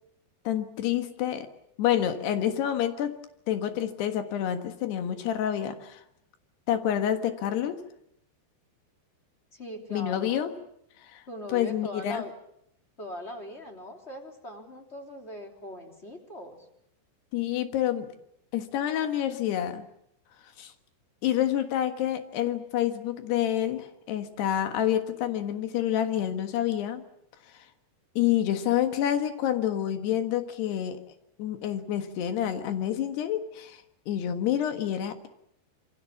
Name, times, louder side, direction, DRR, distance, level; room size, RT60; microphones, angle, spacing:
voice 1, 0.5-1.5 1.8-3.2 3.5-6.0 6.7-7.8 9.9-10.6 11.1-11.2 11.5-12.2 17.3-18.1 18.5-19.9 20.6-20.7 21.2-27.0 28.2-31.0 31.4-33.8 34.1-35.3, left 11 dB, 70° left, 8 dB, 3.5 m, -28 dB
voice 2, 9.5-10.6 11.3-12.3 13.0-16.6, left 1 dB, 15° left, 3 dB, 3.0 m, -40 dB
27.0 x 24.0 x 7.2 m, 0.74 s
omnidirectional pair, 5.0 m